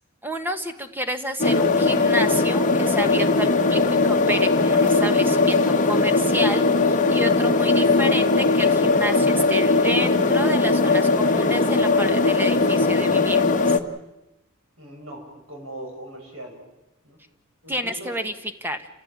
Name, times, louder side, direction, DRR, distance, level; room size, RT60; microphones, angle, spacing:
voice 1, 0.2-13.8 17.7-18.3 18.6-18.9, equal, 10° right, 7 dB, 1.4 m, -30 dB
sound 1, 1.4-13.8, left 3 dB, 40° left, 1.3 m, -19 dB
voice 2, 14.8-15.2 15.5-16.6 17.0-17.2 17.6-18.2, right 1 dB, 85° right, 2 dB, 6.8 m, -39 dB
29.0 x 15.5 x 8.8 m, 0.96 s
head